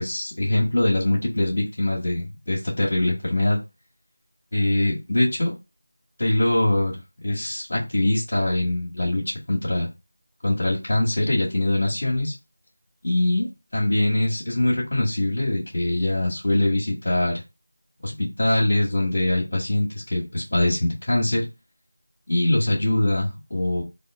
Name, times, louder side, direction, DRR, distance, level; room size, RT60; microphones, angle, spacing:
voice 1, 0.0-3.6 4.5-5.5 6.2-7.0 7.2-9.9 10.4-12.3 13.0-17.4 18.0-21.5 22.3-23.8, left 1 dB, 55° left, -4 dB, 1.9 m, -23 dB
3.5 x 2.8 x 3.5 m, 0.25 s
figure-of-eight pair, 170°, 0 cm